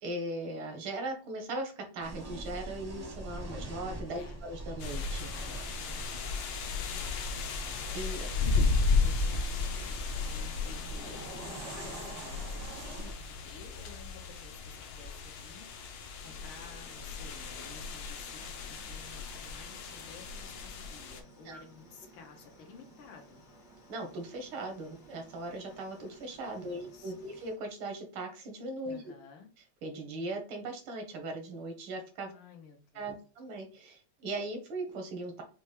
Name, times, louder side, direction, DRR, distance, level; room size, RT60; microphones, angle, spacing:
voice 1, 0.0-5.3 7.9-8.3 21.5-21.6 23.9-29.0 29.8-32.3 33.0-35.4, right 2 dB, 85° right, 4 dB, 1.9 m, -39 dB
sound 1, 2.0-13.1, right 1 dB, 35° right, 0.6 m, -43 dB
voice 2, 4.1-4.4 6.7-7.5 8.3-23.4 26.6-27.1 28.9-29.5 32.3-33.2, left 5 dB, 90° left, 2 dB, 1.8 m, -54 dB
sound 2, 4.8-21.2, left 4 dB, 70° left, 1.3 m, -34 dB
sound 3, 16.3-27.6, right 1 dB, 50° left, 0.5 m, -57 dB
5.8 x 2.2 x 3.2 m, 0.37 s
omnidirectional pair, 2.2 m